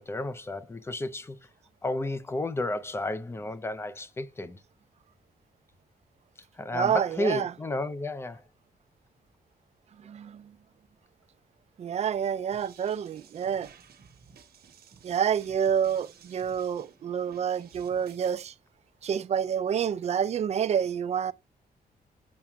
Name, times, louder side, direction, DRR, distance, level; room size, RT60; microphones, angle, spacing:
voice 1, 0.1-1.4 1.8-4.6 6.6-8.4, left 2 dB, 15° left, 0.5 m, -32 dB
voice 2, 6.7-7.6 10.0-10.5 11.8-13.7 15.0-18.5 19.0-21.3, right 8 dB, 45° right, 0.4 m, -28 dB
sound 1, 12.5-18.4, right 7 dB, 80° right, 1.2 m, -55 dB
9.5 x 7.4 x 2.2 m
wide cardioid pair, 175°, 16 cm